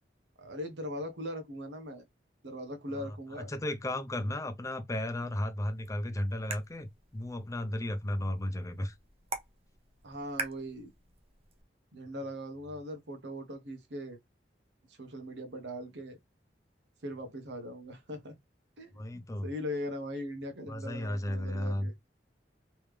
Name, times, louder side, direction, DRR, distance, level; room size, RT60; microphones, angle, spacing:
voice 1, 0.4-2.0 2.4-3.5 10.0-10.9 11.9-14.2 14.9-16.2 17.0-18.3 18.8-21.9, equal, 85° right, 1.1 m, -40 dB
voice 2, 2.9-8.9 19.0-19.5 20.7-21.9, left 1 dB, 20° left, 0.6 m, -34 dB
sound 1, 5.6-11.6, right 4 dB, 35° right, 0.8 m, -45 dB
3.4 x 3.1 x 3.3 m
head